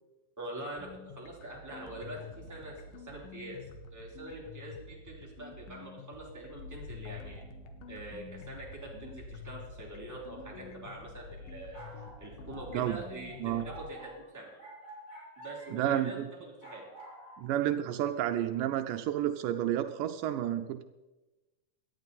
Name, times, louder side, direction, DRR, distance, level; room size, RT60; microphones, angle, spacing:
voice 1, 0.4-3.6 3.9-7.4 7.9-14.5 15.4-16.8, right 1 dB, 5° right, -4 dB, 3.4 m, -44 dB
sound 1, 0.8-13.8, left 4 dB, 80° left, 2.8 m, -49 dB
sound 2, 6.5-13.9, left 3 dB, 45° left, 3.8 m, -50 dB
sound 3, 11.4-15.9 16.6-17.4, right 1 dB, 25° left, 4.3 m, -50 dB
voice 2, 15.7-16.3 17.4-20.8, right 11 dB, 80° right, 8 dB, 2.2 m, -30 dB
18.0 x 12.0 x 4.2 m, 1.1 s
omnidirectional pair, 3.8 m